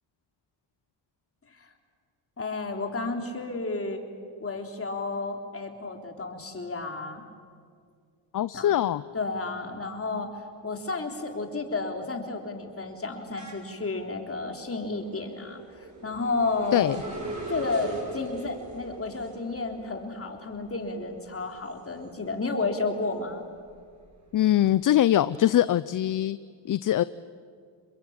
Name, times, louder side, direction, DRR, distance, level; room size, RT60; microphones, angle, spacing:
voice 1, 2.4-4.0 4.4-7.2 8.5-8.8 9.1-17.0 17.5-23.4, left 3 dB, 30° left, 4 dB, 3.7 m, -32 dB
voice 2, 8.3-9.0 16.7-17.0 24.3-26.4 26.6-27.0, left 12 dB, 45° left, 16 dB, 0.6 m, -22 dB
sound 1, 10.4-10.9 11.2-22.5 22.9-24.6, right 3 dB, 35° right, 7.1 m, -42 dB
29.0 x 21.5 x 8.9 m, 2.1 s
cardioid pair, 90°, 45 cm